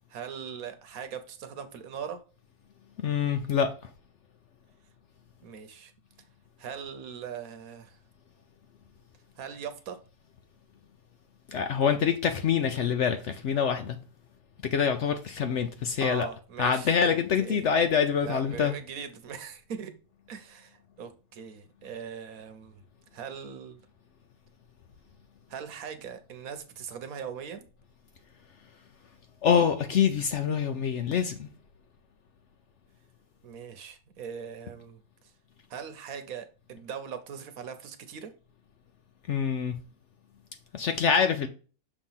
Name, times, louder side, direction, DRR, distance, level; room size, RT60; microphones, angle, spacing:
voice 1, 0.1-2.2 5.4-5.9 6.6-8.0 9.4-10.0 16.0-17.6 18.2-20.0 20.3-22.8 23.1-23.8 25.5-27.7 33.4-35.0 35.7-38.3, right 7 dB, 70° right, 1.2 m, -40 dB
voice 2, 3.0-3.9 11.5-14.0 14.6-16.3 16.6-18.7 29.4-31.5 39.3-39.8 40.7-41.5, left 7 dB, 65° left, 0.8 m, -25 dB
6.5 x 3.0 x 5.6 m
omnidirectional pair, 1.6 m